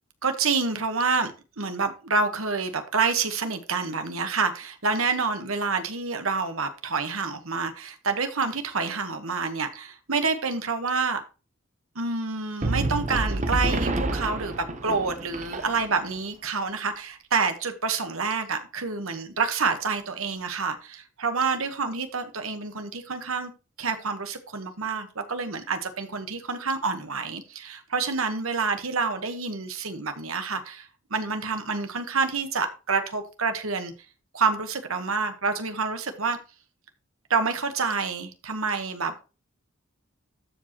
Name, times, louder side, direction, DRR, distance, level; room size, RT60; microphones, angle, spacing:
voice 1, 0.2-11.2 11.9-23.5 23.8-33.9 34.3-36.4 37.3-39.1, right 4 dB, 80° right, 1.4 m, -28 dB
sound 1, 12.6-16.1, right 2 dB, 35° right, 1.0 m, -28 dB
13.0 x 5.0 x 3.0 m
head